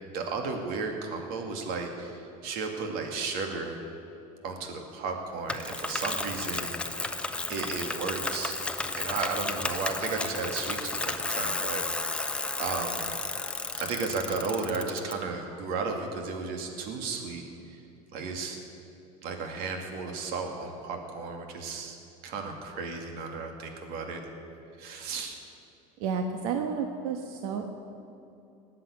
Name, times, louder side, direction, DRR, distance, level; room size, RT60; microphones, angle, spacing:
voice 1, 0.1-3.8 4.4-7.0 7.5-8.6 9.0-12.1 12.6-13.1 13.8-17.4 18.1-18.6 19.2-22.0 22.2-24.2 24.8-25.4, right 4 dB, 55° right, 3 dB, 2.3 m, -34 dB
Bicycle, 5.5-15.1, left 2 dB, 5° left, 0.7 m, -33 dB
voice 2, 26.0-27.8, right 6 dB, 75° right, 4 dB, 1.3 m, -31 dB
19.5 x 7.6 x 9.5 m, 2.8 s
cardioid pair, 145°, 18 cm